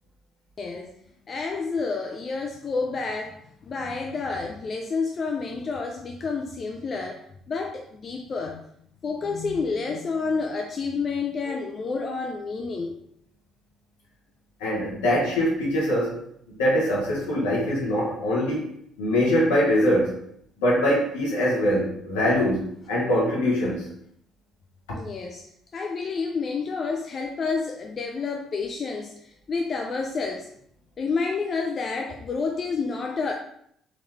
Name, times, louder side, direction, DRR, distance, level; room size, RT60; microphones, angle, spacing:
voice 1, 0.6-1.0 1.3-8.6 9.0-13.0 24.9-25.5 25.7-30.5 31.0-33.3, left 4 dB, 45° left, 2 dB, 0.4 m, -29 dB
voice 2, 14.6-16.2 16.5-20.2 20.6-23.8, equal, 80° left, -5 dB, 1.4 m, -23 dB
3.9 x 3.0 x 3.4 m, 0.69 s
hypercardioid pair, 50°, 0 cm